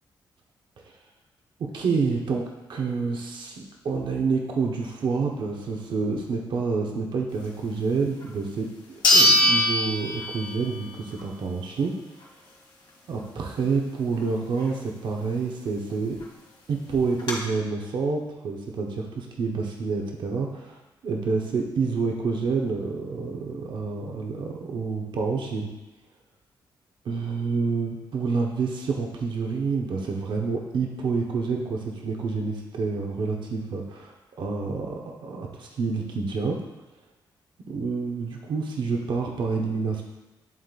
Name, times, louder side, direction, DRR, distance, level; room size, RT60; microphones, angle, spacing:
voice 1, 1.6-8.7 9.1-12.0 13.1-16.2 16.7-25.7 27.0-36.6 37.6-40.0, right 4 dB, 70° right, 0 dB, 0.9 m, -28 dB
sound 1, 8.2-8.3 9.0-10.8 11.2-11.3 15.9-16.0 16.2-16.3 16.9-17.3, left 1 dB, 65° left, 2.0 m, -21 dB
11.0 x 3.8 x 2.4 m, 1.1 s
cardioid pair, 85°, 8 cm